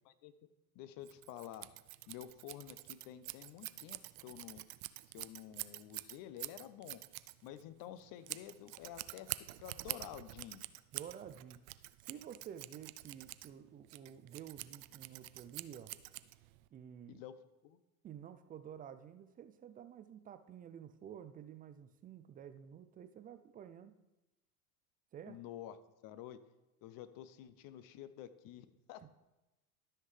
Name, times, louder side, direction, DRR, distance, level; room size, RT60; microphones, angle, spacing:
voice 1, 0.7-1.7 2.1-4.7 5.1-7.0 7.4-9.3 9.6-10.6 17.1-17.8 25.3-25.8 26.0-26.4 26.8-29.1, left 11 dB, 50° left, 14 dB, 0.8 m, -50 dB
Scissors, 1.0-16.7, right 19 dB, 70° right, 0.5 m, -47 dB
voice 2, 10.9-11.6 12.0-15.9 16.7-17.2 18.0-24.0 25.1-25.4 29.0-29.1, right 9 dB, 20° right, 10 dB, 0.3 m, -51 dB
12.5 x 5.8 x 3.3 m, 0.99 s
hypercardioid pair, 95°, 45 cm